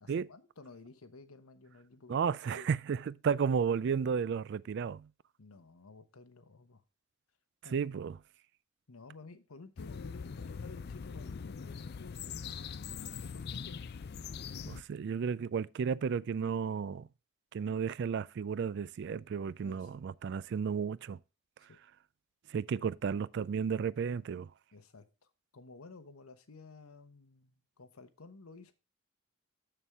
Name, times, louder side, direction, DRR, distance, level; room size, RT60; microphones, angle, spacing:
voice 1, 0.0-2.2 2.5-2.8 5.4-6.8 7.6-7.9 8.9-12.6 13.2-13.8 19.6-19.9 21.7-21.8 24.7-28.7, left 3 dB, 85° left, 1.0 m, -53 dB
voice 2, 2.1-5.1 7.7-8.2 14.7-17.1 17.5-21.2 22.5-24.5, right 6 dB, 55° right, 0.3 m, -33 dB
sound 1, 9.8-14.8, left 6 dB, 50° left, 0.4 m, -42 dB
7.2 x 6.8 x 3.4 m
head